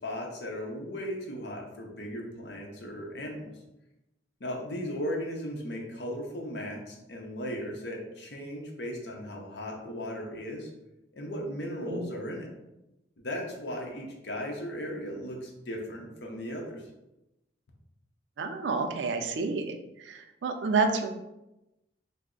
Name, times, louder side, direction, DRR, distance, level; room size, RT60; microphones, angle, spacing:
voice 1, 0.0-3.5 4.4-10.7 11.1-12.5 13.2-16.8, equal, 65° left, 0 dB, 0.7 m, -36 dB
voice 2, 18.4-19.7 20.0-21.1, right 4 dB, 85° right, 5 dB, 0.4 m, -29 dB
3.3 x 2.1 x 3.7 m, 0.93 s
head